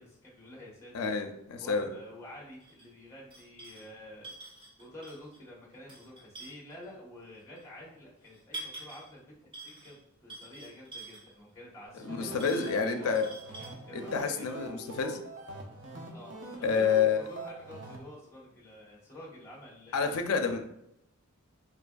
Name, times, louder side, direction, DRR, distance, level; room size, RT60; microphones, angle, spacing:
voice 1, 0.0-1.1 1.6-4.3 4.8-9.3 9.6-13.2 13.9-14.7 16.1-20.3, left 1 dB, 15° left, -5 dB, 1.1 m, -49 dB
voice 2, 0.9-1.9 12.0-13.3 13.9-15.2 16.6-17.2 19.9-20.7, left 6 dB, 90° left, 6 dB, 0.4 m, -29 dB
sound 1, 2.6-2.8 3.3-3.9 4.2-5.4 5.7-6.8 7.6-7.7 8.2-9.1 9.5-10.0 10.3-11.3 12.2-13.7, right 2 dB, 25° right, 1.4 m, -46 dB
sound 2, 11.8-18.0, right 2 dB, 55° right, 0.7 m, -44 dB
4.4 x 2.5 x 2.3 m, 0.78 s
head